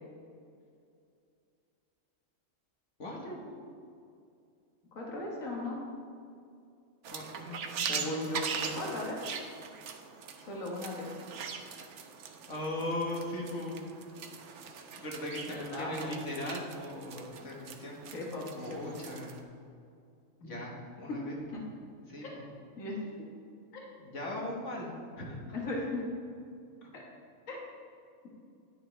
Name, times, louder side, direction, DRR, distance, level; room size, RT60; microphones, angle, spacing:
voice 1, 3.0-3.6 7.1-8.2 12.5-13.8 15.0-18.0 18.5-19.3 20.4-21.4 22.1-22.4 24.0-24.9 25.2-25.4 26.8-26.9, left 1 dB, 65° left, -2 dB, 1.9 m, -39 dB
voice 2, 4.9-5.8 7.9-9.2 10.5-11.1 15.5-16.1 18.1-18.9 20.4-20.5 21.1-21.2 21.5-21.6 22.2-22.3 22.8-23.2 23.7-23.9 25.5-26.0 26.9-27.0 27.5-27.6, left 2 dB, 80° left, -2 dB, 1.9 m, -37 dB
sound 1, 7.0-19.4, right 6 dB, 65° right, 1.0 m, -41 dB
10.5 x 9.3 x 3.3 m, 2.4 s
omnidirectional pair, 1.4 m